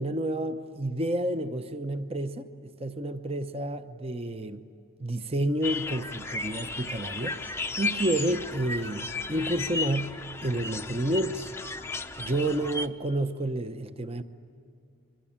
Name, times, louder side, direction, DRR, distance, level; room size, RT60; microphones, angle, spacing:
voice 1, 0.0-4.6 5.0-7.4 7.8-11.5 12.2-14.2, right 1 dB, 30° right, 0.8 m, -30 dB
sound 1, 5.6-12.9, left 3 dB, 10° left, 0.7 m, -34 dB
28.0 x 23.0 x 8.7 m
head